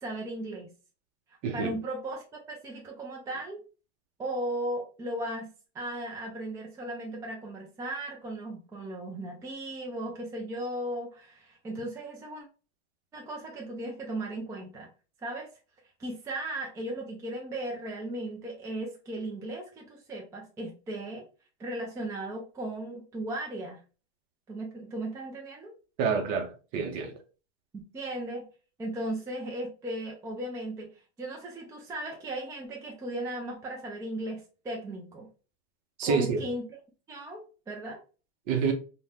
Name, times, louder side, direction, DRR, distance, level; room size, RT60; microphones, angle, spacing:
voice 1, 0.0-0.7 1.5-3.6 4.2-12.5 13.1-14.9 15.2-15.5 16.0-21.3 21.6-23.8 24.5-25.7 27.7-28.5 28.8-30.9 31.2-35.3 36.0-36.8 37.1-38.0, right 1 dB, 10° right, 0.4 m, -36 dB
voice 2, 1.4-1.7 26.0-27.1 36.0-36.4 38.5-38.7, right 5 dB, 45° right, 0.8 m, -28 dB
2.5 x 2.2 x 3.2 m
supercardioid pair, 130°, 33 cm